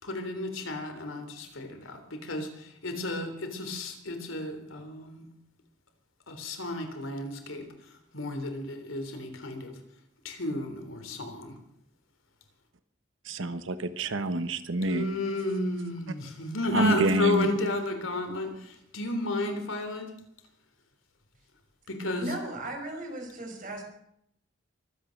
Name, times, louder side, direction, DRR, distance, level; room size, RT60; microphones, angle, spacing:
voice 1, 0.0-5.2 6.3-9.8 10.2-11.5 14.8-20.1 21.9-22.3, left 2 dB, 85° left, 6 dB, 3.5 m, -32 dB
voice 2, 13.2-15.1 16.7-17.5, right 2 dB, 75° right, 11 dB, 1.1 m, -27 dB
voice 3, 22.2-23.8, right 1 dB, 45° right, 2 dB, 5.4 m, -36 dB
24.0 x 9.3 x 6.5 m, 0.75 s
head